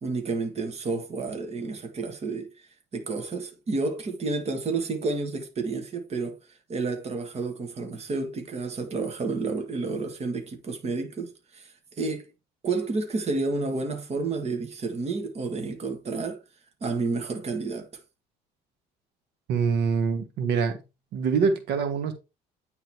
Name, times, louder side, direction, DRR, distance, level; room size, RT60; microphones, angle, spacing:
voice 1, 0.0-2.5 2.9-6.4 6.7-12.3 12.6-16.4 16.8-17.9, right 3 dB, 40° right, 1.8 m, -30 dB
voice 2, 19.5-20.8 21.1-22.1, right 5 dB, 80° right, 1.3 m, -24 dB
9.2 x 3.9 x 4.5 m
cardioid pair, 110°, 17 cm